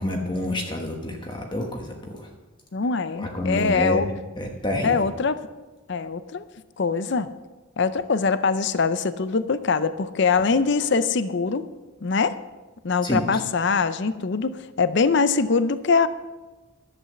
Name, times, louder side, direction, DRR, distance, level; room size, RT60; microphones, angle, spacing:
voice 1, 0.0-2.3 3.2-4.1 4.4-5.0 13.0-13.3, left 1 dB, 20° left, 2 dB, 1.1 m, -28 dB
voice 2, 2.7-4.1 4.8-5.4 5.9-6.4 6.8-7.3 7.8-11.7 12.0-12.4 12.8-16.1, left 4 dB, 55° left, 13 dB, 0.5 m, -23 dB
11.5 x 8.0 x 7.3 m, 1.2 s
head